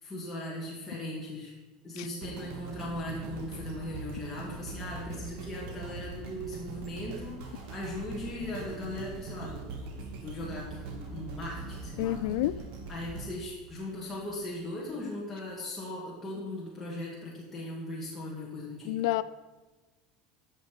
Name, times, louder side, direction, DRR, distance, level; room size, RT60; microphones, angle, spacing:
voice 1, 0.0-1.5 1.8-12.2 12.9-19.0, left 1 dB, 10° left, -6 dB, 2.1 m, -39 dB
sound 1, 2.2-14.4 15.0-15.1, right 3 dB, 60° right, 2.2 m, -42 dB
voice 2, 12.0-12.6 18.9-19.2, left 16 dB, 75° left, 16 dB, 0.4 m, -28 dB
13.5 x 6.5 x 5.3 m, 1.2 s
supercardioid pair, 145°, 3 cm